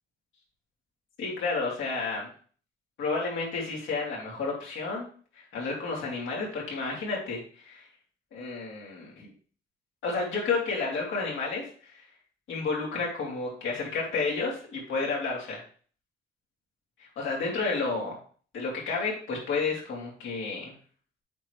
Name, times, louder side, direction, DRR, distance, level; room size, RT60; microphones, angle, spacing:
voice 1, 1.2-2.3 3.0-5.1 5.3-7.8 8.3-9.3 10.0-12.0 12.5-15.6 17.0-18.2 18.5-20.7, left 4 dB, 75° left, -4 dB, 3.3 m, -31 dB
8.0 x 4.7 x 3.4 m, 0.44 s
cardioid pair, 90°, 20 cm